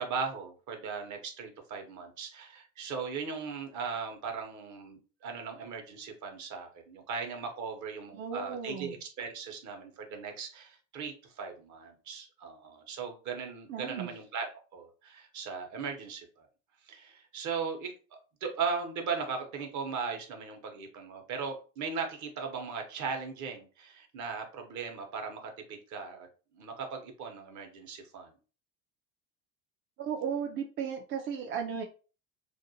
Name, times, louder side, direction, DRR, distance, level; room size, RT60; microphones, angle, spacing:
voice 1, 0.0-16.5 16.9-26.3 26.5-28.3, right 5 dB, 50° right, 4 dB, 0.9 m, -38 dB
voice 2, 8.1-9.0 13.7-14.1 30.0-31.8, right 7 dB, 35° right, 2 dB, 0.4 m, -35 dB
2.5 x 2.1 x 2.7 m, 0.36 s
supercardioid pair, 90°, 37 cm